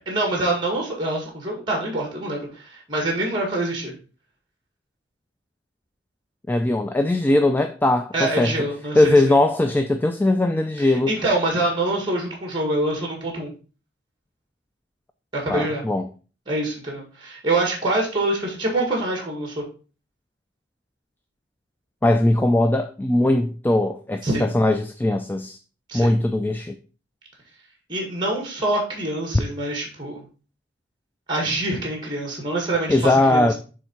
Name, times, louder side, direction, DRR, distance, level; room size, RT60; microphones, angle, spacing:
voice 1, 0.1-3.9 8.1-9.3 10.8-13.5 15.3-15.8 16.5-19.6 24.2-24.5 25.9-26.1 27.9-30.2 31.3-33.5, right 2 dB, 25° right, 1.7 m, -25 dB
voice 2, 6.5-8.5 8.9-11.1 15.5-16.1 22.0-25.6 25.9-26.8 32.9-33.5, left 1 dB, 10° left, 0.3 m, -20 dB
7.0 x 3.6 x 4.4 m
head